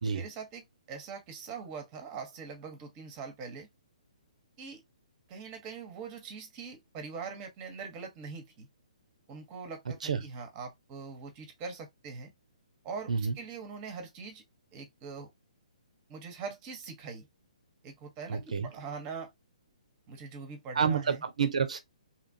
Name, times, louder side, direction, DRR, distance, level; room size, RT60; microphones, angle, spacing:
voice 1, 0.1-3.7 4.6-4.8 5.3-8.7 9.3-12.3 12.8-14.4 14.7-15.3 16.1-17.3 17.8-19.3 20.1-21.2, right 5 dB, 25° right, 1.0 m, -42 dB
voice 2, 18.3-18.7 20.7-21.8, right 6 dB, 70° right, 0.6 m, -29 dB
2.9 x 2.4 x 2.6 m
figure-of-eight pair, 135°, 4 cm